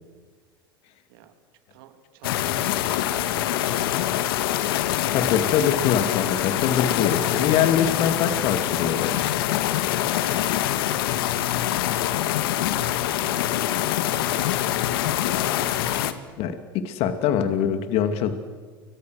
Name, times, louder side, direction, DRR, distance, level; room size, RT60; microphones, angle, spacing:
voice 1, 1.7-4.3 10.4-11.0 11.5-12.3 12.6-14.7, right 8 dB, 70° right, 7 dB, 3.3 m, -49 dB
sound 1, 2.2-16.1, left 12 dB, 70° left, 1.8 m, -24 dB
voice 2, 5.1-9.2 16.4-18.3, left 8 dB, 55° left, 8 dB, 2.5 m, -23 dB
30.0 x 24.5 x 6.5 m, 1.5 s
hypercardioid pair, 90°, 12 cm